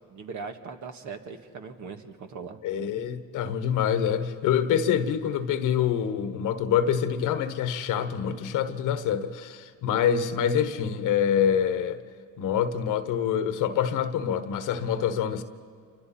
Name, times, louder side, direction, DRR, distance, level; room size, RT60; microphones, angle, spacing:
voice 1, 0.1-2.6, right 5 dB, 70° right, 1.8 m, -39 dB
voice 2, 2.6-12.0 12.4-15.4, left 8 dB, 90° left, 1.2 m, -26 dB
28.0 x 24.5 x 4.3 m
cardioid pair, 75°, 30 cm